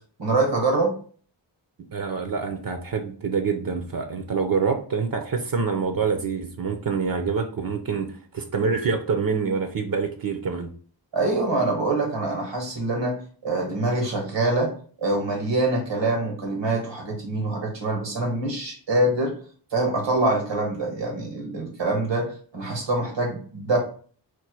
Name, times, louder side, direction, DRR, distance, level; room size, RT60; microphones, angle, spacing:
voice 1, 0.2-1.0 11.1-14.7 15.0-19.4 19.7-23.8, right 2 dB, 90° right, 1 dB, 1.6 m, -25 dB
voice 2, 1.9-10.7, right 5 dB, 55° right, 5 dB, 0.7 m, -26 dB
4.4 x 2.2 x 4.6 m, 0.44 s
wide cardioid pair, 80°, 42 cm